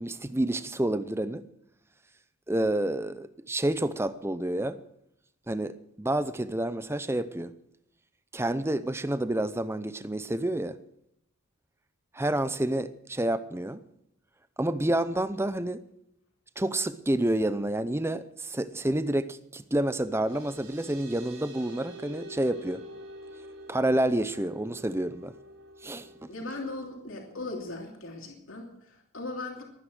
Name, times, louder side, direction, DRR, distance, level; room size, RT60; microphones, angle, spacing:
voice 1, 0.0-1.4 2.5-4.8 5.5-7.5 8.3-10.8 12.1-13.8 14.6-15.8 16.6-22.8 23.7-25.3 25.8-26.1, right 1 dB, 10° right, 0.6 m, -29 dB
sound 1, 19.8-26.9, right 1 dB, 80° right, 4.6 m, -47 dB
voice 2, 26.3-29.6, left 2 dB, 65° left, 3.0 m, -38 dB
23.0 x 9.7 x 6.3 m
head